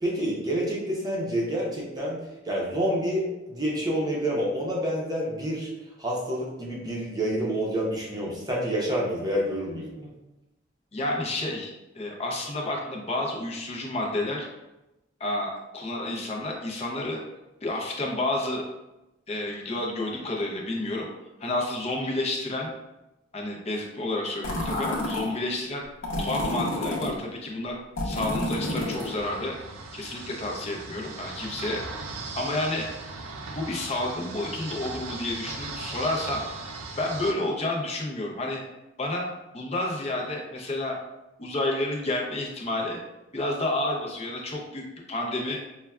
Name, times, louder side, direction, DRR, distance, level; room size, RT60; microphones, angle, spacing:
voice 1, 0.0-2.2 2.5-5.7 6.0-10.1, equal, 20° right, -4 dB, 0.7 m, -28 dB
voice 2, 10.9-14.5 15.2-17.2 17.6-18.7 19.3-21.1 21.4-22.7 23.3-25.8 26.2-27.7 28.0-29.5 29.9-31.8 32.3-32.9 33.5-36.4 37.0-38.6 39.0-39.3 39.5-41.0 41.4-43.0 43.3-44.8 45.1-45.6, left 2 dB, 30° left, -1 dB, 0.6 m, -30 dB
sound 1, 24.4-25.3 26.0-27.1 28.0-29.2, left 1 dB, 70° left, 0.8 m, -29 dB
sound 2, 28.6-37.3, right 3 dB, 85° right, 0.5 m, -38 dB
5.4 x 2.2 x 2.3 m, 0.97 s
head